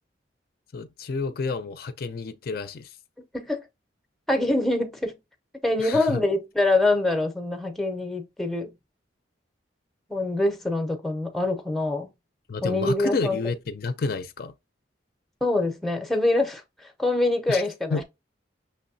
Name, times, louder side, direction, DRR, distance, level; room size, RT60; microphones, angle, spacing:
voice 1, 0.7-2.9 5.8-6.2 12.5-14.5 17.5-17.6 17.9-18.0, left 4 dB, 50° left, 0.4 m, -30 dB
voice 2, 4.3-5.2 5.6-8.7 10.1-12.1 12.6-13.4 15.4-18.0, left 2 dB, ahead, 0.6 m, -25 dB
5.9 x 3.0 x 2.7 m
head